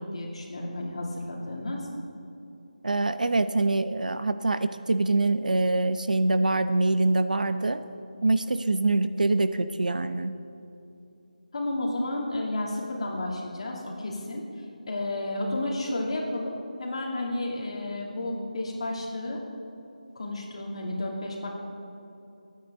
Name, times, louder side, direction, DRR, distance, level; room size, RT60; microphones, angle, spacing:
voice 1, 0.0-1.9 11.5-14.4 14.9-19.4 20.1-21.5, left 1 dB, 45° left, -2 dB, 2.7 m, -32 dB
voice 2, 2.8-7.8 8.2-10.3, right 2 dB, 70° right, 11 dB, 0.7 m, -24 dB
22.5 x 9.5 x 3.8 m, 2.8 s
figure-of-eight pair, 165°, 4 cm